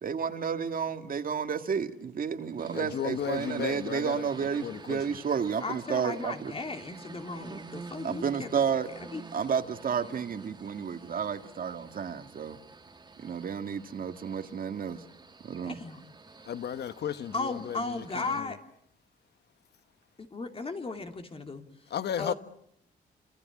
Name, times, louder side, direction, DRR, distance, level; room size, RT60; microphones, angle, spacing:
voice 1, 0.0-6.5 8.0-8.9 9.3-12.6 13.2-15.0 15.4-15.8, right 7 dB, 55° right, 2.0 m, -31 dB
sound 1, 2.6-18.4, right 4 dB, 25° right, 1.8 m, -49 dB
voice 2, 2.7-5.2 16.4-18.5 21.9-22.3, left 9 dB, 70° left, 1.1 m, -35 dB
voice 3, 5.6-8.5 9.0-9.2 15.6-16.0 17.3-18.6 20.3-22.3, left 3 dB, 30° left, 2.9 m, -36 dB
30.0 x 25.5 x 7.4 m
cardioid pair, 115°, 18 cm